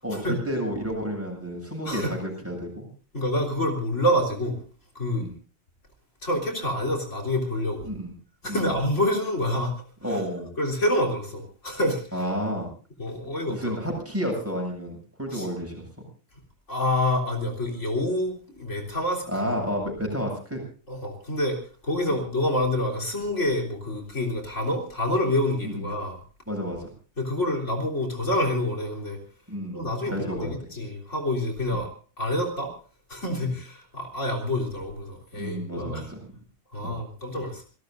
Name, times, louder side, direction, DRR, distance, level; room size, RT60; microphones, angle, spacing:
voice 1, 0.0-2.9 5.2-5.3 7.8-8.1 8.5-8.7 10.0-10.5 12.1-12.7 13.5-15.8 19.3-20.6 22.1-22.2 25.6-25.8 26.5-26.9 29.5-30.5 33.4-33.5 35.4-36.2 36.8-37.0, equal, 10° right, 1 dB, 7.7 m, -31 dB
voice 2, 3.1-4.6 4.9-5.2 6.2-7.9 8.4-9.7 10.1-10.2 10.6-12.3 13.0-13.8 15.3-15.5 16.7-19.6 20.9-26.2 27.2-29.2 29.7-31.9 32.2-32.7 33.1-36.1 36.7-37.6, left 1 dB, 85° left, 3 dB, 4.0 m, -27 dB
27.0 x 17.5 x 2.6 m, 0.40 s
omnidirectional pair, 1.2 m